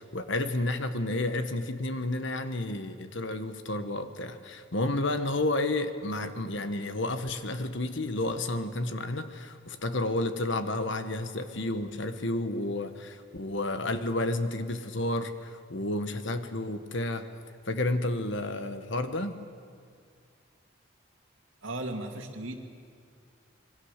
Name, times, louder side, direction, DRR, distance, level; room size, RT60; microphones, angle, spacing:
voice 1, 0.0-17.3 17.7-19.4, left 2 dB, 65° left, 9 dB, 1.4 m, -31 dB
voice 2, 21.6-22.6, right 2 dB, 70° right, 3 dB, 2.5 m, -36 dB
26.0 x 22.0 x 6.6 m, 2.2 s
head